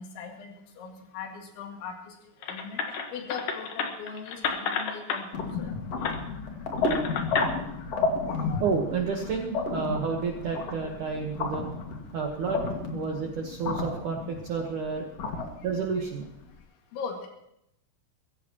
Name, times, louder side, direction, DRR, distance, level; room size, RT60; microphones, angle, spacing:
voice 1, 0.0-2.1 2.5-2.8 3.1-5.7 8.3-8.6 16.9-17.3, left 6 dB, 80° left, 2 dB, 4.5 m, -40 dB
sound 1, 2.4-5.2 6.0-6.2 6.8-7.5, left 6 dB, 65° left, 2.3 m, -31 dB
sound 2, 5.3-16.4, left 3 dB, 45° left, 2.3 m, -32 dB
voice 2, 8.6-11.7 12.1-12.6 12.9-15.1 15.6-16.3, right 5 dB, 65° right, 1 dB, 2.0 m, -30 dB
22.5 x 15.5 x 3.0 m, 0.79 s
omnidirectional pair, 5.3 m